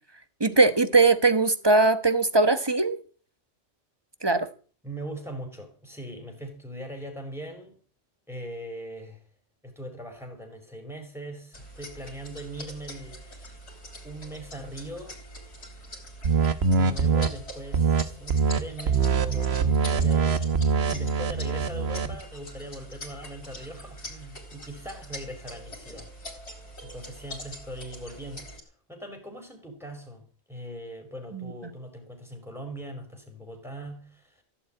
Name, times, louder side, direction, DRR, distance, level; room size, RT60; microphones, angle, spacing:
voice 1, 0.4-3.0 4.2-4.5 31.3-31.4, right 3 dB, 25° right, 1.2 m, -20 dB
voice 2, 4.8-7.8 8.3-9.2 9.6-13.7 14.0-15.2 16.7-20.5 20.9-26.1 26.8-28.5 28.9-30.2 30.5-34.4, right 1 dB, ahead, 5.0 m, -40 dB
sound 1, 11.5-28.6, equal, 70° left, 4.0 m, -43 dB
sound 2, 16.2-17.3 17.7-18.0 18.3-18.6 18.9-22.2, right 5 dB, 65° right, 1.3 m, -23 dB
16.0 x 7.3 x 9.0 m
omnidirectional pair, 1.2 m